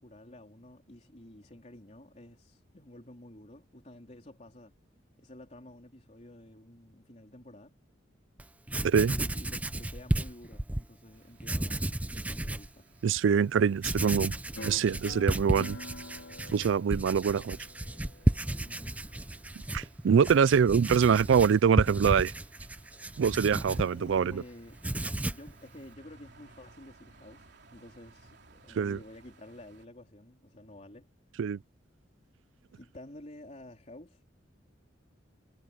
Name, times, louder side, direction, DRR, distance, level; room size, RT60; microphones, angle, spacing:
voice 1, 0.0-4.7 5.2-7.7 9.1-12.8 18.6-19.0 20.7-21.0 23.9-24.8 25.3-31.1 32.7-34.3, left 1 dB, 35° left, 3.7 m, -50 dB
Writing, 8.4-8.5 8.7-10.9 11.4-12.7 13.2-13.3 13.8-24.4 24.7-25.5, right 1 dB, 10° right, 0.5 m, -33 dB
voice 2, 8.8-9.1 13.0-14.4 14.6-15.8 16.5-17.6 19.7-22.3 23.2-24.4 28.8-29.0 31.4-31.6, right 7 dB, 75° right, 0.4 m, -24 dB
sound 1, 11.1-29.9, right 2 dB, 60° right, 3.6 m, -60 dB
sound 2, 14.6-19.6, left 2 dB, 85° left, 4.0 m, -47 dB
head